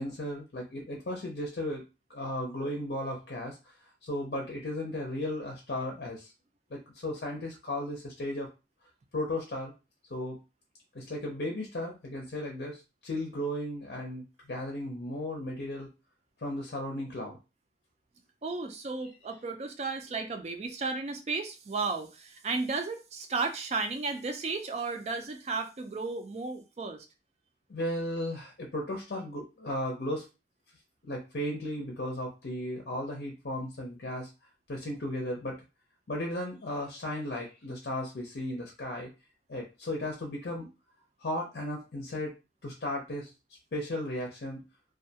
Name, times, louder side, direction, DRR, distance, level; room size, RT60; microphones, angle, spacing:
voice 1, 0.0-1.8 2.1-3.6 4.0-6.3 6.7-8.5 9.1-9.7 10.1-10.4 10.9-15.9 16.4-17.4 27.7-30.3 31.0-34.3 34.7-35.6 36.1-39.1 39.5-40.7 41.2-42.4 42.6-43.3 43.7-44.6, left 1 dB, 65° left, 0 dB, 0.5 m, -35 dB
voice 2, 18.4-27.1, right 4 dB, 35° right, 7 dB, 0.3 m, -34 dB
2.3 x 2.2 x 2.7 m, 0.28 s
head